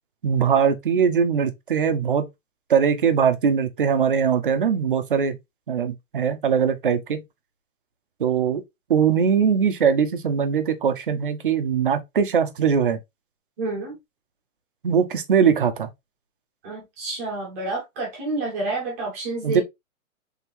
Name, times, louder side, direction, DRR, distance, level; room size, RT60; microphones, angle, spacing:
voice 1, 0.2-2.3 2.7-5.4 5.7-7.2 8.2-8.6 8.9-13.0 14.8-15.9 19.4-19.6, right 7 dB, 40° right, 0.5 m, -21 dB
voice 2, 13.6-14.0 16.6-19.6, right 2 dB, 10° right, 0.8 m, -29 dB
3.5 x 3.5 x 2.8 m
hypercardioid pair, 170°, 42 cm